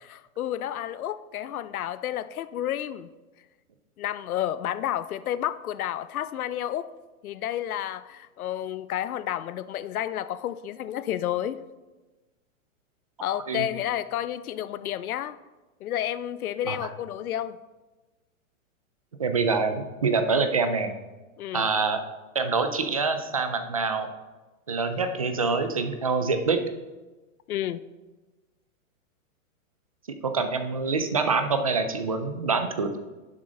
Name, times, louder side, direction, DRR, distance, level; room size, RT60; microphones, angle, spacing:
voice 1, 0.0-3.1 4.0-6.9 7.2-11.6 13.2-15.4 15.8-17.6 21.4-21.7 27.5-27.8, left 11 dB, 90° left, 15 dB, 0.7 m, -31 dB
voice 2, 13.3-13.7 16.6-16.9 19.2-20.9 21.5-22.0 22.3-24.1 24.7-26.6 30.2-33.0, right 4 dB, 30° right, 8 dB, 0.3 m, -25 dB
11.0 x 7.4 x 3.8 m, 1.2 s
hypercardioid pair, 165°, 42 cm